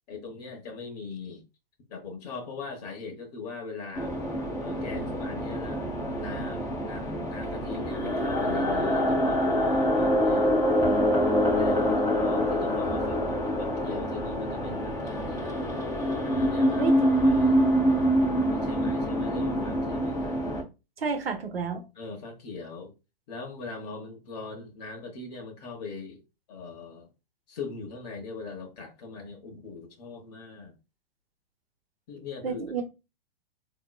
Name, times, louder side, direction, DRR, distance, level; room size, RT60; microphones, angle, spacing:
voice 1, 0.1-1.4 1.9-4.1 4.6-5.8 6.1-10.5 11.5-11.9 12.2-15.6 16.2-17.6 18.5-20.4 21.9-22.9 23.3-26.2 26.5-27.1 27.5-30.7 32.1-32.6, left 4 dB, 45° left, 0.9 m, -40 dB
sound 1, 4.0-20.6, equal, 10° left, 0.7 m, -26 dB
voice 2, 21.0-21.8 32.4-32.8, right 5 dB, 80° right, 0.9 m, -30 dB
3.7 x 2.9 x 2.3 m
figure-of-eight pair, 115°, 29 cm